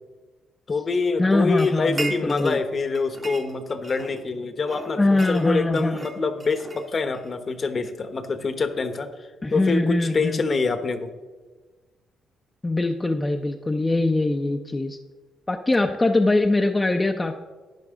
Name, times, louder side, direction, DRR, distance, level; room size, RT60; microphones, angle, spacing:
voice 1, 0.7-9.1 9.5-11.1, left 4 dB, 40° left, 9 dB, 1.0 m, -25 dB
voice 2, 1.2-2.6 5.0-6.0 9.4-10.4 12.6-15.0 15.5-17.4, left 2 dB, 20° left, 4 dB, 0.6 m, -22 dB
sound 1, 1.6-2.6 2.9-4.2 4.6-7.3, right 3 dB, 30° right, 1.0 m, -37 dB
12.0 x 9.2 x 3.6 m, 1.3 s
cardioid pair, 90°, 0 cm